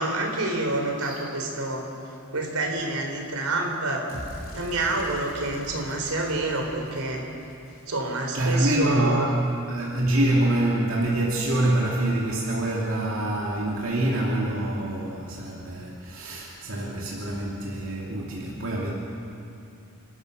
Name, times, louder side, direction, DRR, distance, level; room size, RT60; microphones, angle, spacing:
voice 1, 0.0-1.8 2.3-4.1 4.5-7.2 7.9-9.3, right 2 dB, 90° right, 1 dB, 3.9 m, -28 dB
sound 1, 4.1-8.3, equal, 40° left, 3.5 m, -43 dB
voice 2, 8.3-18.9, right 1 dB, 65° right, -4 dB, 2.7 m, -25 dB
29.5 x 13.5 x 6.8 m, 2.7 s
head